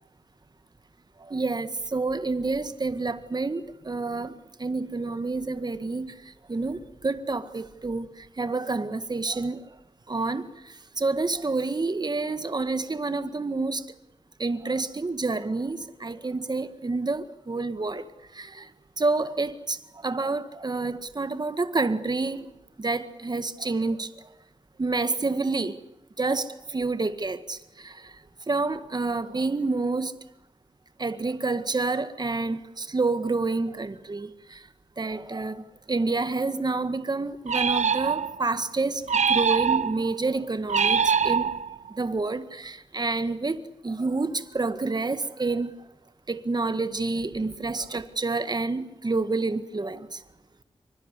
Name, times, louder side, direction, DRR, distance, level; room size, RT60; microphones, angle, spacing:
voice 1, 1.2-6.2 6.5-9.7 10.1-13.9 14.4-18.1 18.3-18.7 19.0-22.5 22.8-24.1 24.8-25.8 26.2-28.1 28.5-30.1 31.0-34.6 35.0-41.6 42.0-45.7 46.3-50.2, right 3 dB, 35° right, 1.8 m, -28 dB
sound 1, 37.5-38.5 39.1-40.1 40.7-41.9, right 6 dB, 85° right, 1.0 m, -24 dB
26.5 x 25.0 x 8.3 m
wide cardioid pair, 105°, 12 cm